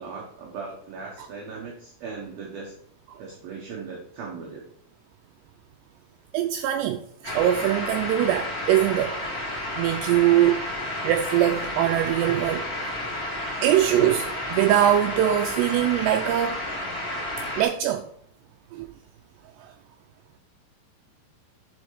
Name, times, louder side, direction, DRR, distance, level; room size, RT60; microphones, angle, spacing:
voice 1, 0.0-2.7 3.2-4.6, right 4 dB, 65° right, 2.7 m, -38 dB
voice 2, 6.3-9.2 9.8-10.6 11.0-12.7 13.6-16.6 17.6-18.1 18.7-18.9 19.6-19.7, right 12 dB, 90° right, 2.4 m, -22 dB
sound 1, 7.2-17.6, left 1 dB, 30° left, 1.9 m, -31 dB
10.5 x 5.2 x 4.8 m
omnidirectional pair, 5.5 m